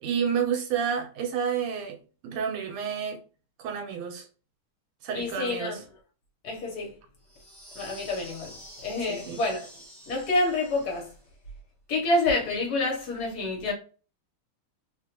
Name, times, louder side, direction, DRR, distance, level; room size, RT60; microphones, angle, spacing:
voice 1, 0.0-2.0 2.2-3.2 3.6-4.3 5.0-5.8 9.1-9.4, right 7 dB, 80° right, 1.5 m, -30 dB
voice 2, 5.1-5.8 6.4-7.0 7.7-9.7 10.1-11.1 11.9-13.7, left 2 dB, 55° left, 1.2 m, -28 dB
sound 1, 7.3-11.3, equal, ahead, 0.7 m, -48 dB
3.2 x 2.4 x 2.8 m
omnidirectional pair, 2.3 m